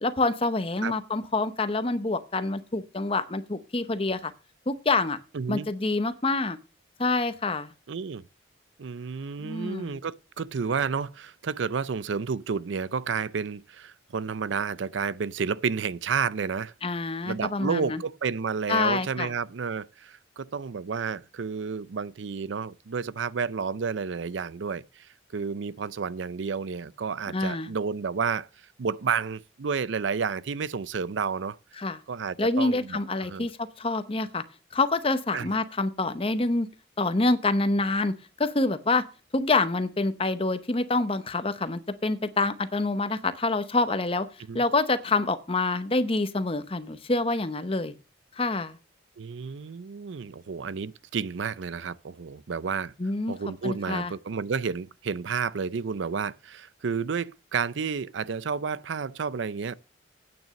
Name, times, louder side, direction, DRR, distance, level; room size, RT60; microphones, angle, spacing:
voice 1, 0.0-4.3 4.7-5.2 5.5-6.6 7.0-7.7 9.4-10.0 16.8-18.0 18.7-19.3 27.3-27.7 31.8-32.0 32.4-34.4 34.7-36.7 37.0-39.1 39.3-44.3 44.5-47.9 48.4-48.8 53.0-53.4 53.6-54.1, left 3 dB, 30° left, 0.8 m, -26 dB
voice 2, 5.3-5.7 7.9-8.2 8.8-16.7 17.3-28.5 28.8-31.6 32.1-33.5 35.3-35.6 44.5-44.6 49.2-52.9 53.3-59.7, right 5 dB, 70° right, 0.5 m, -31 dB
9.0 x 6.1 x 7.6 m
head